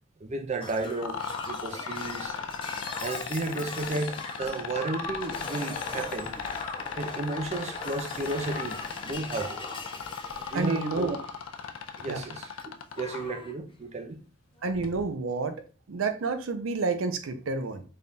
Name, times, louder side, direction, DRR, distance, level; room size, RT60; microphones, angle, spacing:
voice 1, 0.2-2.4 3.0-6.3 7.0-9.7 10.5-11.2 12.0-14.2, right 2 dB, 35° right, 0.4 m, -33 dB
Shatter, 0.6-12.6 12.9-13.5 14.6-14.7, left 3 dB, 25° left, 0.5 m, -40 dB
sound 1, 1.0-13.2 14.8-14.9, left 7 dB, 85° left, 0.4 m, -35 dB
voice 2, 10.5-11.2 12.1-12.2 14.6-15.6 15.9-17.8, right 4 dB, 85° right, 0.5 m, -29 dB
3.5 x 2.3 x 4.0 m
head